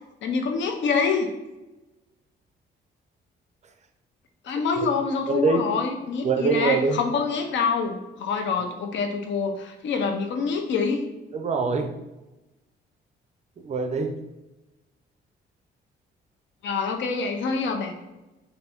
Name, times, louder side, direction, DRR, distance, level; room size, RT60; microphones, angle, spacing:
voice 1, 0.2-1.3 4.5-11.0 16.6-17.9, left 5 dB, 65° left, 4 dB, 0.5 m, -26 dB
voice 2, 5.3-5.7 6.2-7.0 11.3-11.9 13.6-14.2, right 4 dB, 35° right, 7 dB, 0.4 m, -24 dB
2.7 x 2.6 x 3.4 m, 1.0 s
cardioid pair, 90°, 20 cm